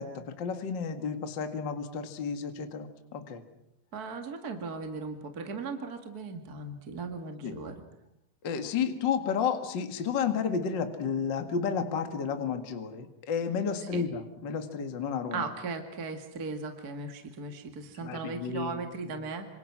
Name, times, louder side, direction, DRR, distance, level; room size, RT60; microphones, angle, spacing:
voice 1, 0.0-3.4 7.4-7.6 8.4-15.4 18.0-18.8, left 6 dB, 40° left, 7 dB, 1.9 m, -32 dB
voice 2, 3.9-7.8 13.8-14.0 15.3-19.5, right 4 dB, 35° right, 5 dB, 1.9 m, -37 dB
27.0 x 26.5 x 6.2 m, 0.79 s
omnidirectional pair, 4.2 m